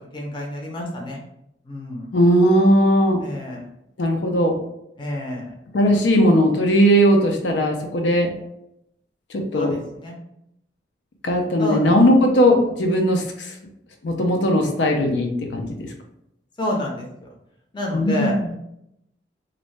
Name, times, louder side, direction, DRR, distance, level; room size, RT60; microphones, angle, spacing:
voice 1, 0.1-1.2 1.7-2.1 3.2-3.6 5.0-5.5 5.8-6.0 9.5-10.1 11.6-12.0 16.6-17.0 17.7-18.4, left 1 dB, 25° left, -1 dB, 0.5 m, -28 dB
voice 2, 2.1-3.2 4.0-4.5 5.7-8.3 9.3-9.7 11.2-13.5 14.0-15.9 17.9-18.5, equal, 90° left, 3 dB, 0.5 m, -18 dB
2.6 x 2.1 x 3.1 m, 0.79 s
head